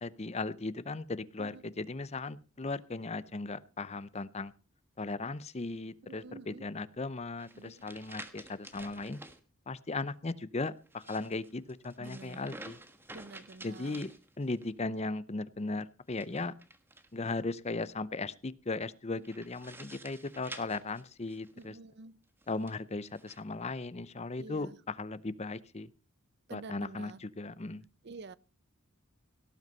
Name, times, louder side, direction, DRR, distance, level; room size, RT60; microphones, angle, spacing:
voice 1, 0.0-4.5 5.0-9.2 9.7-12.8 13.6-14.1 14.4-16.5 17.1-21.8 22.5-25.9 26.5-27.8, left 3 dB, 30° left, 0.6 m, -37 dB
voice 2, 1.4-1.7 6.0-6.7 7.5-7.8 12.0-12.6 13.1-14.0 19.1-19.2 21.5-22.2 24.4-24.8 26.5-27.2 28.0-28.4, right 3 dB, 50° right, 0.6 m, -49 dB
sound 1, 7.4-9.4 10.8-14.7 16.1-17.4 19.2-21.7 22.4-23.4, right 2 dB, 10° right, 1.3 m, -50 dB
17.5 x 8.0 x 5.4 m
head